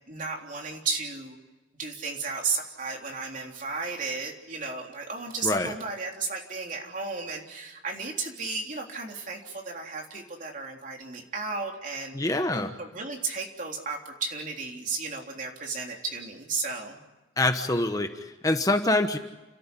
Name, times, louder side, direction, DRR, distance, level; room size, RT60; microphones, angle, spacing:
voice 1, 0.1-1.4 1.7-17.0, right 4 dB, 45° right, 1 dB, 3.6 m, -34 dB
voice 2, 5.4-5.7 12.1-12.7 17.4-19.2, left 2 dB, 20° left, 7 dB, 1.1 m, -25 dB
29.5 x 14.0 x 9.9 m, 1.1 s
head